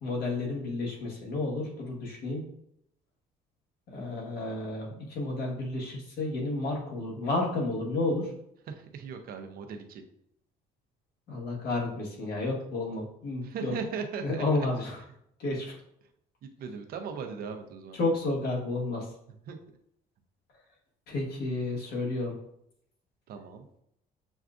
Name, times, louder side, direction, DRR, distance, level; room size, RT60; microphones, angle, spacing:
voice 1, 0.0-2.4 3.9-8.3 11.3-13.7 14.2-15.0 15.4-15.7 17.9-19.1 21.1-22.3, left 2 dB, 70° left, -2 dB, 1.5 m, -31 dB
voice 2, 8.7-10.0 13.4-14.4 16.6-18.0 19.5-19.6 23.3-23.6, right 5 dB, 65° right, 5 dB, 0.7 m, -38 dB
7.0 x 2.4 x 2.5 m, 0.74 s
cardioid pair, 110°, 17 cm